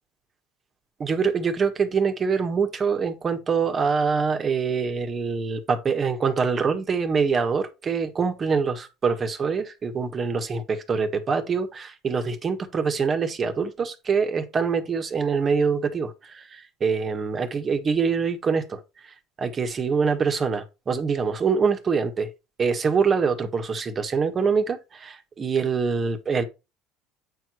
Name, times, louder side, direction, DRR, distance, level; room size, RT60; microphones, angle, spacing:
voice 1, 1.0-22.3 22.6-26.4, right 5 dB, 30° right, 1.7 m, -25 dB
8.9 x 4.7 x 4.6 m
cardioid pair, 120°, 0 cm